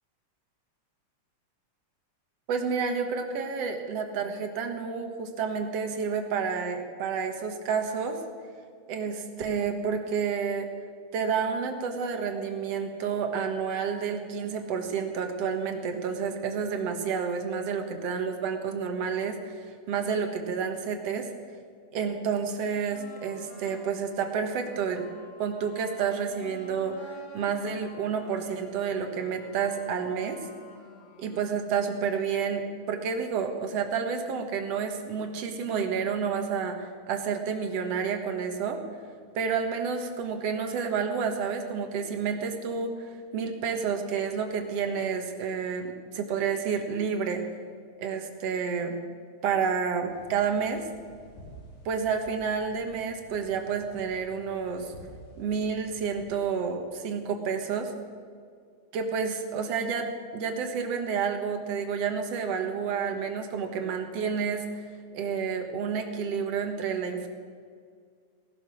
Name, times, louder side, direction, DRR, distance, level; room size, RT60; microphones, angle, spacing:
voice 1, 2.5-8.2 8.9-10.7 11.1-21.3 21.9-25.1 25.4-30.4 31.2-38.8 39.4-47.4 48.0-49.0 49.4-50.8 51.9-54.9 55.4-57.9 58.9-64.8 65.1-67.3, right 6 dB, 60° right, 5 dB, 2.3 m, -30 dB
sound 1, 22.9-31.7, left 2 dB, 55° left, 3.0 m, -50 dB
sound 2, 50.1-56.4, equal, 75° left, 5.1 m, -51 dB
17.5 x 11.5 x 6.4 m, 2.1 s
omnidirectional pair, 3.5 m